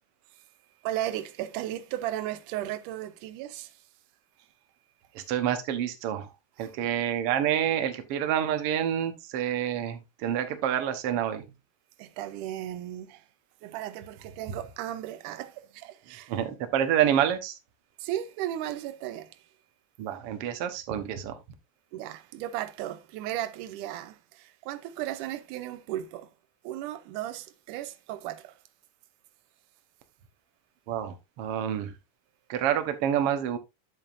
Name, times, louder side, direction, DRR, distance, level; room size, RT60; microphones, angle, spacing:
voice 1, 0.8-3.8 4.4-4.5 6.6-6.9 12.0-13.3 13.6-16.3 18.0-19.5 21.9-26.3 26.6-28.6, right 12 dB, 90° right, 2.2 m, -35 dB
voice 2, 5.1-6.3 6.6-11.4 16.3-17.6 20.0-21.4 30.9-31.9 32.5-33.6, right 10 dB, 60° right, 1.7 m, -28 dB
8.8 x 7.6 x 2.5 m
omnidirectional pair, 3.5 m